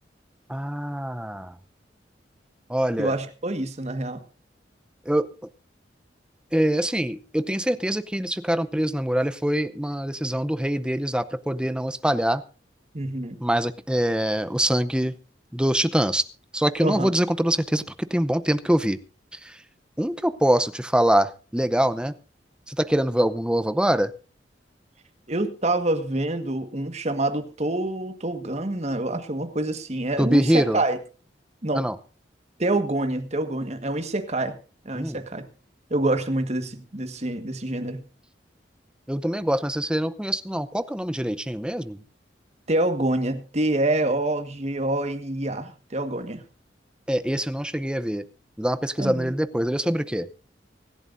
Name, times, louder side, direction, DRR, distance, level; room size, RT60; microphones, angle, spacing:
voice 1, 0.5-1.6 2.7-3.1 5.1-5.3 6.5-12.4 13.4-15.1 15.5-16.2 16.5-17.8 18.1-19.0 19.3-19.6 20.0-22.1 22.7-24.1 30.2-30.8 31.7-32.0 34.9-35.2 39.1-42.0 47.1-48.2 48.6-50.3, right 1 dB, 5° right, 13 dB, 0.6 m, -24 dB
voice 2, 3.0-4.2 12.9-13.4 16.8-17.1 25.3-31.0 31.6-31.9 32.6-34.6 34.8-35.5 35.9-38.0 42.7-46.4 49.0-49.3, right 1 dB, 40° right, 8 dB, 1.5 m, -26 dB
25.0 x 11.0 x 2.6 m, 0.35 s
head